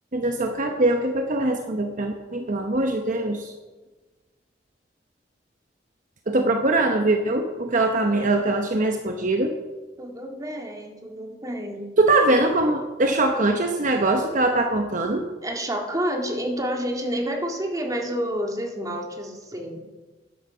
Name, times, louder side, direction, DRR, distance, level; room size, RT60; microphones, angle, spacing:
voice 1, 0.1-3.5 6.3-9.5 12.0-15.2, right 2 dB, 45° right, 4 dB, 0.9 m, -22 dB
voice 2, 10.0-11.8 15.4-19.8, equal, 20° right, 2 dB, 1.9 m, -29 dB
12.5 x 11.0 x 5.7 m, 1.2 s
head